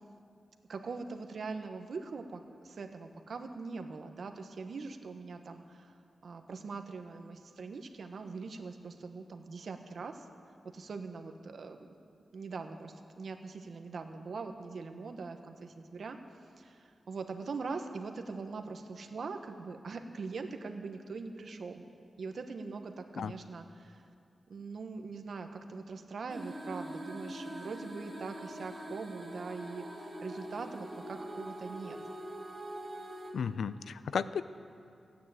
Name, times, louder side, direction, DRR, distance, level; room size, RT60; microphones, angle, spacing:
voice 1, 0.7-5.9 6.2-10.3 10.7-11.9 12.3-16.2 16.6-21.8 22.2-24.0 24.5-32.0, right 4 dB, 65° right, 6 dB, 1.2 m, -42 dB
sound 1, 26.3-33.3, right 1 dB, 30° right, 3.0 m, -43 dB
voice 2, 33.3-34.4, left 6 dB, 85° left, 15 dB, 0.4 m, -34 dB
15.5 x 9.3 x 8.9 m, 2.6 s
wide cardioid pair, 120°, 0 cm